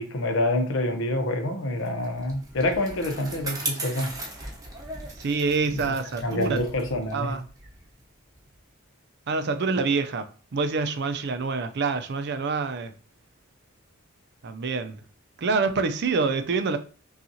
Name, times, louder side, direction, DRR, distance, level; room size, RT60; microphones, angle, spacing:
voice 1, 0.0-4.1 5.7-5.8 6.2-7.4, left 1 dB, 70° left, 0.8 m, -27 dB
Bicycle, 1.8-8.6, right 2 dB, 20° right, 0.9 m, -38 dB
voice 2, 5.2-6.6 7.1-7.4 9.3-12.9 14.4-15.0 15.4-16.8, right 4 dB, 60° right, 0.5 m, -26 dB
5.5 x 2.4 x 2.7 m
head